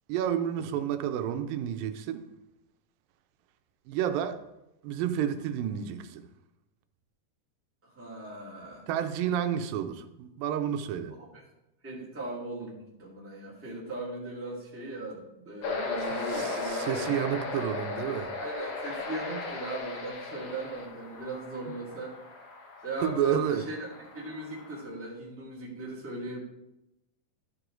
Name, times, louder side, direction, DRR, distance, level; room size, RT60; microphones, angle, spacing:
voice 1, 0.1-2.2 3.9-4.4 4.8-6.3 8.9-11.1 16.1-18.3 23.0-23.6, right 9 dB, 85° right, 9 dB, 2.3 m, -30 dB
voice 2, 7.8-8.9 11.2-11.4 11.8-17.2 18.4-22.1 22.8-23.9 24.1-26.4, right 2 dB, 5° right, -6 dB, 1.5 m, -38 dB
sound 1, 15.6-24.8, left 3 dB, 60° left, 2.1 m, -37 dB
12.5 x 4.9 x 3.8 m, 0.92 s
omnidirectional pair, 3.9 m